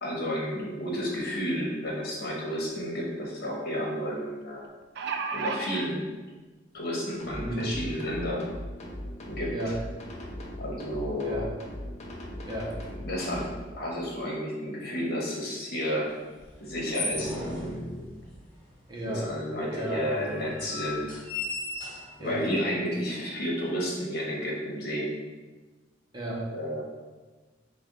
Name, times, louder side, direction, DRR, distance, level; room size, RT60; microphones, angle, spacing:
voice 1, 0.0-4.7 5.3-6.0 6.7-8.5 9.3-9.5 10.6-11.4 13.0-13.4 13.8-16.1 16.6-18.0 19.0-21.1 22.2-25.2 26.5-26.8, equal, 55° left, -3 dB, 1.1 m, -31 dB
sound 1, 2.5-2.6 3.0-3.1 4.6-5.9 6.8-6.9 7.3-7.4, right 5 dB, 60° right, 0.3 m, -32 dB
sound 2, 7.2-13.6, equal, 35° left, 0.5 m, -39 dB
voice 2, 9.5-9.8 11.2-11.5 12.5-12.8 18.9-19.3 19.7-20.5 22.2-22.5 26.1-26.5, right 1 dB, 25° right, -4 dB, 0.8 m, -33 dB
sound 3, 16.4-18.5 19.2-19.3 19.5-19.6 20.3-22.4, left 2 dB, 5° left, 1.3 m, -35 dB
4.9 x 2.3 x 3.7 m, 1.2 s
head